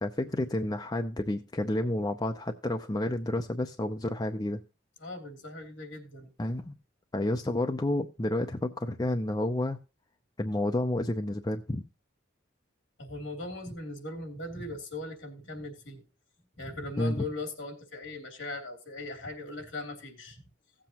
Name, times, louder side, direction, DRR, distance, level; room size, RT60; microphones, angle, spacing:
voice 1, 0.0-4.6 6.4-6.7 7.1-9.8 10.4-11.9 17.0-17.2, left 1 dB, 20° left, 5 dB, 0.5 m, -30 dB
voice 2, 5.0-6.3 13.0-16.0 16.6-20.4, left 2 dB, 65° left, 3 dB, 3.0 m, -39 dB
16.0 x 7.5 x 2.9 m, 0.29 s
head